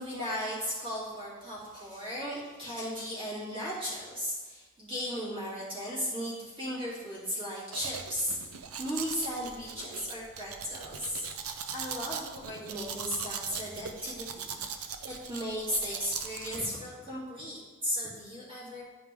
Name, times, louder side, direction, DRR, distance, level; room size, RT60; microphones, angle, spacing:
voice 1, 0.0-8.4 8.8-11.2 11.7-14.6 15.0-18.8, equal, 25° right, -8 dB, 2.6 m, -36 dB
Domestic sounds home sounds, 7.7-16.6, right 7 dB, 90° right, 0.6 m, -40 dB
10.5 x 4.8 x 3.5 m, 1.3 s
head